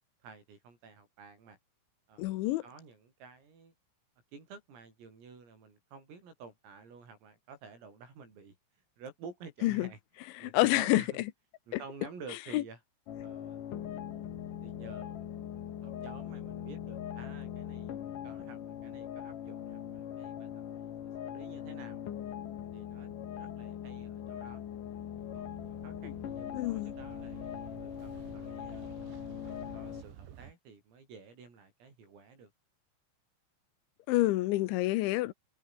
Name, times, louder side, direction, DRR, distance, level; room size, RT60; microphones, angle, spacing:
voice 1, 0.2-1.6 2.1-2.3 2.6-3.7 4.3-8.6 9.0-10.0 10.4-11.2 11.7-12.8 13.2-13.6 14.6-15.3 15.8-22.0 22.7-24.7 25.3-28.9 29.4-32.5, right 5 dB, 85° right, 11.0 m, -51 dB
voice 2, 2.2-2.6 9.6-9.9 10.3-11.0 12.5-12.6 26.0-26.1 26.5-27.0 34.1-35.3, left 17 dB, 75° left, 3.0 m, -28 dB
sound 1, 13.1-30.0, left 10 dB, 55° left, 2.6 m, -41 dB
sound 2, 24.6-30.5, right 10 dB, 65° right, 4.6 m, -52 dB
omnidirectional pair, 5.9 m